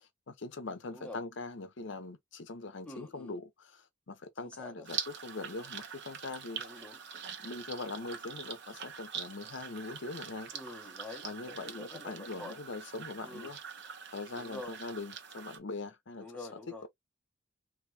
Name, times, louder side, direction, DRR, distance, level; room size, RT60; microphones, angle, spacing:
voice 1, 0.0-6.6 7.4-10.5 11.2-13.6 14.1-16.3, left 3 dB, 60° left, 0.7 m, -42 dB
voice 2, 0.8-1.2 2.8-3.4 4.4-4.8 6.5-7.0 10.5-12.6 13.2-13.5 14.4-14.8 16.2-16.9, left 2 dB, 5° left, 1.0 m, -47 dB
sound 1, 4.8-15.6, right 7 dB, 60° right, 0.9 m, -44 dB
3.5 x 3.0 x 3.3 m
head